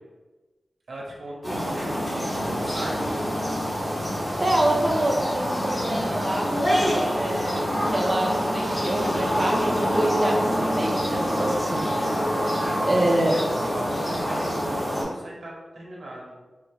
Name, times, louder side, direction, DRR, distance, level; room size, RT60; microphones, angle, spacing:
voice 1, 0.9-3.3 12.5-16.4, right 1 dB, 80° right, -3 dB, 0.7 m, -38 dB
sound 1, 1.4-15.0, equal, 15° left, 0.8 m, -26 dB
sound 2, 2.2-12.9, equal, 75° left, 1.0 m, -42 dB
voice 2, 4.4-6.5 7.1-11.9 12.8-13.3, right 1 dB, 20° right, -2 dB, 0.4 m, -26 dB
3.5 x 2.1 x 3.1 m, 1.2 s
wide cardioid pair, 120°, 0 cm